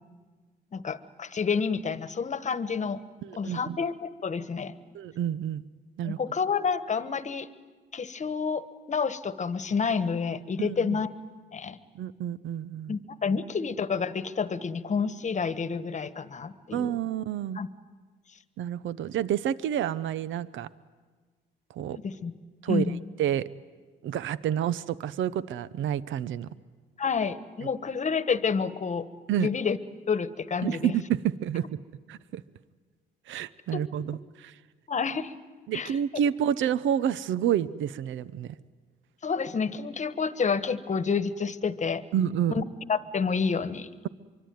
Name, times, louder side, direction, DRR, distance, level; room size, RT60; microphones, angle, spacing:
voice 1, 0.7-3.0 3.3-4.7 6.0-7.5 7.9-11.1 11.5-11.8 12.9-16.9 17.5-17.7 21.9-22.3 22.7-23.0 27.0-29.1 29.4-29.8 30.1-30.9 33.7-33.8 34.9-35.3 35.7-35.9 39.2-42.0 42.5-42.6 42.9-43.9, left 5 dB, 35° left, 13 dB, 1.2 m, -29 dB
voice 2, 3.2-3.8 4.9-5.6 6.0-6.2 10.6-11.0 11.9-12.9 16.7-17.6 18.6-20.7 21.7-22.0 22.6-22.9 23.2-23.5 24.0-26.5 29.3-29.5 30.6-31.8 32.1-32.4 33.3-34.5 35.7-38.5 42.1-42.6, right 10 dB, 75° right, 17 dB, 0.7 m, -29 dB
24.5 x 24.0 x 9.3 m, 1.4 s
cardioid pair, 90°, 20 cm